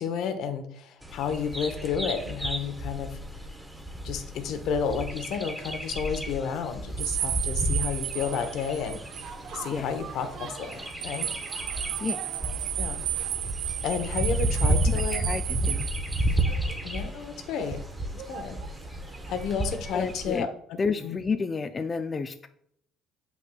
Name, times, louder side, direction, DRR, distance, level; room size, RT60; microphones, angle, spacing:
voice 1, 0.0-3.2 4.0-9.0 9.5-11.3 12.8-13.0 13.8-15.2 15.6-15.7 16.8-17.8 18.1-18.6 19.3-20.8 21.0-21.2, left 7 dB, 70° left, 8 dB, 0.8 m, -31 dB
Bird vocalization bird call bird song, 1.0-20.4, right 1 dB, 5° right, 0.8 m, -32 dB
sound 1, 7.0-9.3 9.6-9.7 10.7-16.4, right 12 dB, 80° right, 0.4 m, -33 dB
sound 2, 8.1-20.1, right 5 dB, 65° right, 0.9 m, -46 dB
voice 2, 15.1-15.9 19.9-20.5 20.8-22.5, left 4 dB, 25° left, 8 dB, 0.3 m, -30 dB
7.5 x 5.8 x 2.2 m, 0.68 s
cardioid pair, 120°, 0 cm